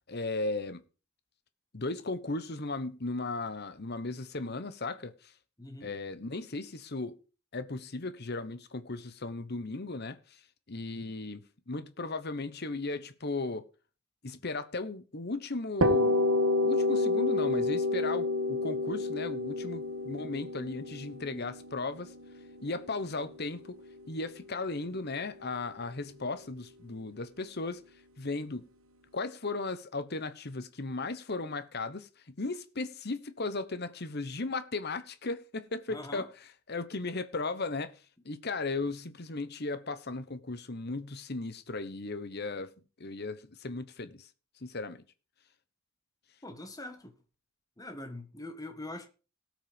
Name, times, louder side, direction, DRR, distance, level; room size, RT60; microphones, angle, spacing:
voice 1, 0.1-0.8 1.7-5.1 5.8-7.2 7.5-10.4 10.7-13.6 14.2-16.3 16.6-22.1 22.6-23.8 24.1-27.8 28.2-28.7 29.1-36.3 36.7-37.9 38.2-42.7 43.0-44.3 44.6-45.0, left 3 dB, 50° left, 1.1 m, -36 dB
voice 2, 5.6-5.9 10.9-11.1 35.9-36.3 46.4-47.1 47.8-49.1, left 1 dB, 15° left, 1.6 m, -43 dB
sound 1, 15.8-23.5, left 2 dB, 85° right, 1.8 m, -29 dB
17.5 x 6.3 x 5.2 m
head